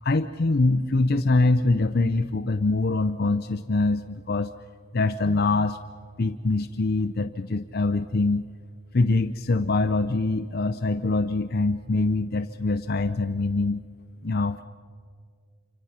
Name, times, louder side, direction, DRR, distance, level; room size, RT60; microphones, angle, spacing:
voice 1, 0.0-4.5 4.9-5.8 6.2-8.4 8.9-13.8 14.2-14.6, left 3 dB, 45° left, 10 dB, 0.6 m, -24 dB
28.5 x 25.5 x 5.8 m, 2.2 s
head